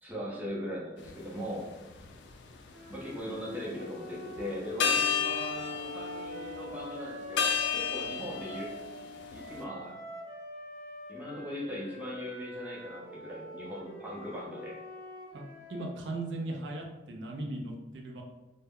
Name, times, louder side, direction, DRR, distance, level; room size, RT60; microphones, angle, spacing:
voice 1, 0.0-1.7 2.9-8.7 9.3-9.9 11.1-14.8, equal, 10° right, -5 dB, 0.5 m, -39 dB
sound 1, 1.0-1.2 1.9-2.9 4.4-4.5 4.8-9.6, left 7 dB, 80° left, 0.3 m, -32 dB
sound 2, 2.7-8.8 9.3-16.0, equal, 55° right, 0.8 m, -46 dB
voice 2, 15.7-18.2, right 2 dB, 85° right, 1 dB, 0.4 m, -37 dB
2.1 x 2.0 x 3.5 m, 1.0 s
head